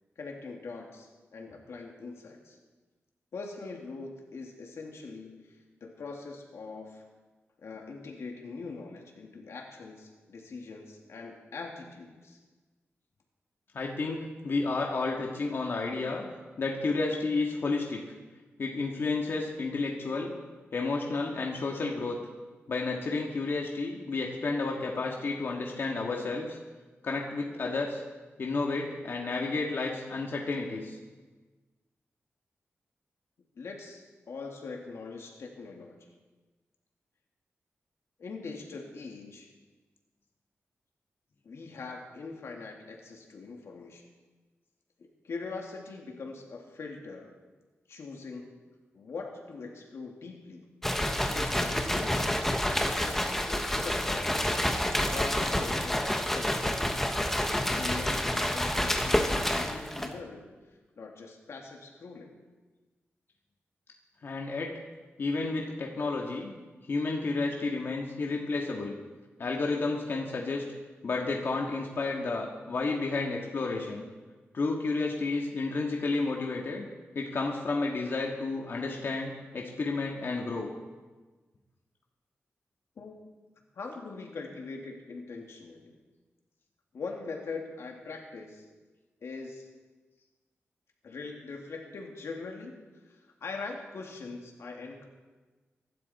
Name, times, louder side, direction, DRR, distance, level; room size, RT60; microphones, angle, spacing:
voice 1, 0.2-2.6 3.3-7.0 7.6-12.4 33.6-36.0 38.2-39.5 41.4-44.1 45.0-47.3 47.9-48.6 48.9-50.7 51.3-52.5 53.0-57.1 57.7-60.5 61.0-62.4 83.0-83.2 83.7-86.0 86.9-88.7 89.2-89.7 91.0-95.1, left 4 dB, 80° left, 1 dB, 2.3 m, -42 dB
voice 2, 13.7-16.2 16.6-18.0 18.6-20.3 20.7-22.2 22.7-26.6 27.0-28.0 28.4-31.0 64.2-64.7 65.2-66.5 66.9-68.9 69.4-70.7 71.0-74.1 74.5-76.8 77.2-80.7, left 3 dB, 55° left, -1 dB, 1.8 m, -31 dB
sound 1, 50.8-60.2, left 1 dB, 5° left, 1.1 m, -28 dB
24.0 x 12.0 x 4.3 m, 1.3 s
wide cardioid pair, 170°, 5 cm